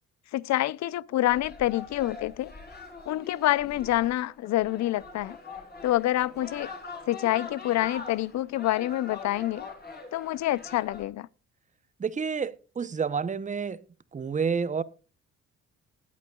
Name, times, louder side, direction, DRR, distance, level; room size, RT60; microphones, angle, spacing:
voice 1, 0.3-2.5 3.1-5.4 5.8-6.7 7.1-9.7 10.1-11.3, left 15 dB, 65° left, 0.5 m, -27 dB
sound 1, 1.3-11.0, left 4 dB, 30° left, 3.7 m, -43 dB
voice 2, 12.0-13.8 14.1-14.8, right 6 dB, 25° right, 0.7 m, -29 dB
20.0 x 8.4 x 2.3 m
cardioid pair, 90°, 30 cm